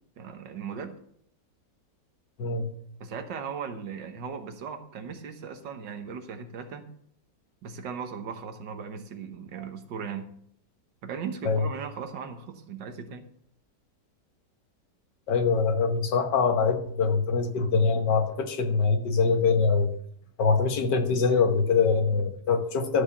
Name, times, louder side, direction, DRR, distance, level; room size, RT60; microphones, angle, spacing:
voice 1, 0.2-0.9 3.0-6.9 7.6-10.3 11.0-13.3, right 6 dB, 85° right, 7 dB, 1.8 m, -37 dB
voice 2, 2.4-2.7 11.4-11.7 15.3-20.0 20.4-23.0, left 5 dB, 75° left, 6 dB, 1.8 m, -24 dB
13.5 x 5.1 x 6.9 m, 0.67 s
omnidirectional pair, 1.9 m